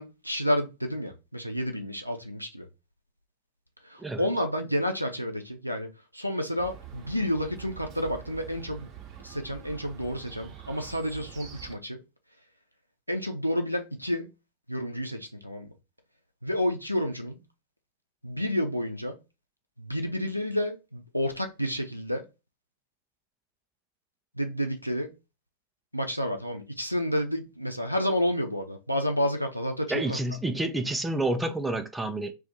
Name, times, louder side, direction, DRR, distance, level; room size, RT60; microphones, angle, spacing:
voice 1, 0.0-2.7 3.8-8.9 9.2-12.0 13.1-14.3 14.7-15.7 16.4-17.4 18.2-19.2 19.8-22.2 24.4-25.1 25.9-30.2, equal, 90° right, 0.5 m, -30 dB
Chirp tweet, 6.6-11.8, right 10 dB, 35° right, 0.8 m, -45 dB
voice 2, 29.9-32.3, right 2 dB, 10° right, 0.4 m, -29 dB
2.5 x 2.4 x 4.0 m
figure-of-eight pair, 90°, 0 cm